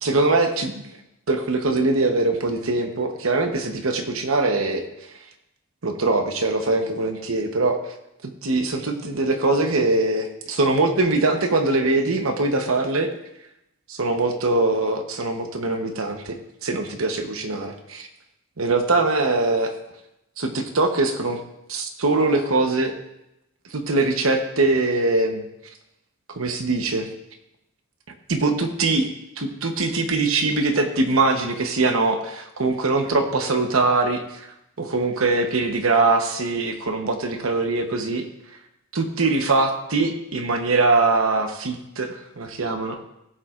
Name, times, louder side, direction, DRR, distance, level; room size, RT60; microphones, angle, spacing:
voice 1, 0.0-0.7 1.3-5.2 5.8-7.8 8.2-13.1 13.9-18.1 18.6-19.7 20.4-21.4 21.7-23.0 23.7-25.5 26.3-27.1 28.3-29.1 29.4-38.3 38.9-43.0, right 3 dB, 70° right, 5 dB, 1.0 m, -22 dB
16.5 x 7.4 x 2.5 m, 0.86 s
head